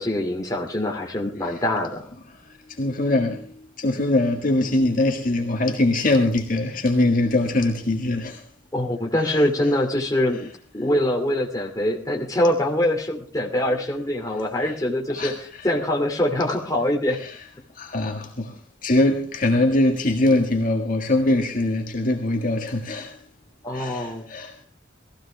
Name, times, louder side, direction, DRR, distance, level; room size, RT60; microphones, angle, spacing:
voice 1, 0.0-2.1 8.7-10.5 10.7-17.2 23.6-24.3, left 1 dB, 20° left, 2.4 m, -24 dB
voice 2, 2.7-3.5 3.8-8.4 9.3-9.4 14.6-14.7 15.1-15.7 17.1-17.4 17.7-23.2 23.7-24.6, left 2 dB, 45° left, 1.7 m, -22 dB
19.5 x 15.0 x 3.4 m
head